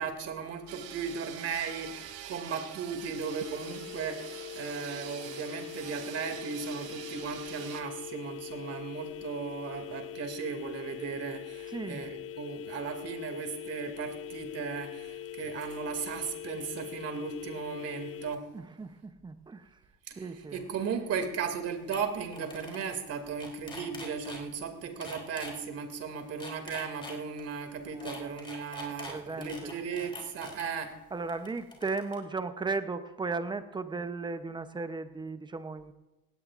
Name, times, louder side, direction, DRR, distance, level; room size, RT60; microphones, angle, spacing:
voice 1, 0.0-18.5 20.1-20.2 20.5-31.0, right 6 dB, 30° right, 6 dB, 2.4 m, -36 dB
sound 1, 0.7-7.8, right 10 dB, 50° right, 1.8 m, -45 dB
sound 2, 3.2-18.3, left 10 dB, 30° left, 0.6 m, -42 dB
voice 2, 11.7-12.1 18.5-19.8 20.1-20.6 27.9-28.4 29.1-29.7 31.1-35.9, right 4 dB, 10° right, 10 dB, 0.7 m, -36 dB
sound 3, 21.5-21.6 21.9-22.0 22.3-22.9 23.2-24.4 25.0-25.5 26.2-27.4 28.0-30.7 31.3-32.2, left 2 dB, 10° left, 3.6 m, -44 dB
18.5 x 17.5 x 2.5 m, 1.0 s
supercardioid pair, 125°, 47 cm